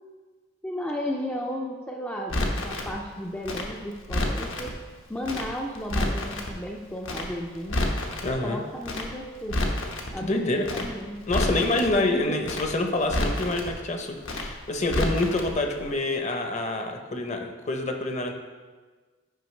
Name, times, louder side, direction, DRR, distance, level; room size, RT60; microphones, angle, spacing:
voice 1, 0.6-4.7 5.1-7.8 8.4-9.6 10.1-11.2 12.0-12.4, equal, 10° left, -1 dB, 0.4 m, -34 dB
Crackle, 2.3-2.9 3.4-4.7 5.2-5.5 5.7-6.5 7.0-7.3 7.5-8.3 8.8-9.1 9.4-10.1 10.6-10.9 11.2-11.9 12.4-12.7 13.0-13.7 14.2-14.5 14.8-15.5 15.8-15.9, left 1 dB, 75° left, 1.0 m, -29 dB
voice 2, 8.2-8.6 10.2-10.9 11.3-18.3, left 2 dB, 35° left, 4 dB, 0.7 m, -27 dB
9.1 x 5.4 x 3.2 m, 1.4 s
head